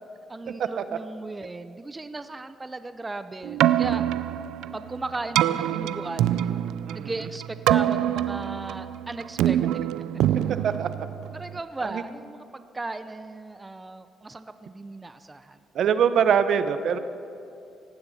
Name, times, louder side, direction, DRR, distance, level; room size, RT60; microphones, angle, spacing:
voice 1, 0.3-4.0 4.7-6.4 6.9-9.9 11.3-15.6, right 2 dB, 20° right, 11 dB, 0.6 m, -36 dB
Keyboard (musical), 3.4-11.6, right 12 dB, 90° right, 0.4 m, -25 dB
voice 2, 15.7-17.0, right 7 dB, 65° right, 11 dB, 0.8 m, -22 dB
18.5 x 15.5 x 4.2 m, 2.6 s
cardioid pair, 90°, 0 cm